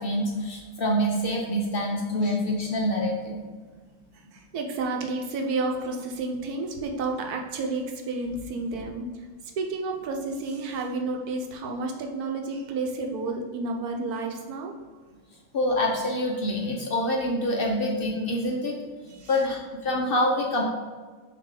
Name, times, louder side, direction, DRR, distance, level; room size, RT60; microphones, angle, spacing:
voice 1, 0.0-3.4 15.5-18.8 19.3-20.6, left 1 dB, 50° left, -1 dB, 0.8 m, -26 dB
voice 2, 4.1-9.2 9.6-14.7 19.1-19.3, right 3 dB, 90° right, 3 dB, 1.3 m, -31 dB
6.7 x 3.0 x 4.8 m, 1.4 s
omnidirectional pair, 1.5 m